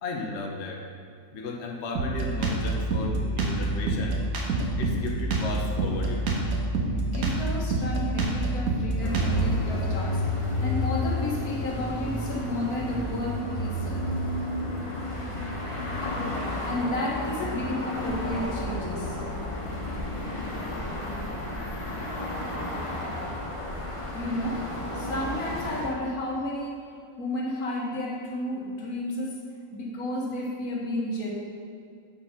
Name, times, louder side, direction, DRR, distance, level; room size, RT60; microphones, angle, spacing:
voice 1, 0.0-0.9 1.3-4.2 4.8-6.2, left 3 dB, 55° left, 0 dB, 1.0 m, -34 dB
Drum kit, 2.0-9.6, right 2 dB, 75° right, 1.5 m, -27 dB
voice 2, 6.9-10.2 10.6-14.1 16.6-19.2 24.1-26.9 27.2-29.4 29.7-31.3, left 1 dB, 75° left, -3 dB, 1.9 m, -32 dB
sound 1, 9.0-25.9, left 1 dB, 25° left, 0.9 m, -31 dB
8.8 x 4.4 x 5.6 m, 2.3 s
omnidirectional pair, 1.6 m